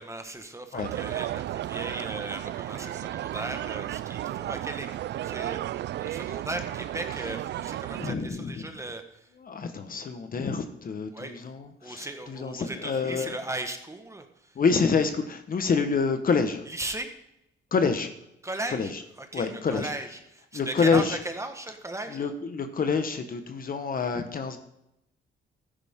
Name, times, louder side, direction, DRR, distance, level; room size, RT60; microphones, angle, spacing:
voice 1, 0.0-9.3 11.1-11.3 11.8-14.6 16.7-17.1 18.4-18.9 19.2-22.3, right 2 dB, 15° right, 6 dB, 1.5 m, -37 dB
sound 1, 0.8-8.1, right 13 dB, 65° right, 0.4 m, -34 dB
voice 2, 8.0-8.7 9.4-13.3 14.5-16.6 17.7-18.1 18.7-19.0 19.3-19.9 20.5-21.2 22.1-24.6, left 5 dB, 45° left, 7 dB, 1.3 m, -27 dB
13.5 x 10.5 x 3.7 m, 0.82 s
cardioid pair, 90°, 20 cm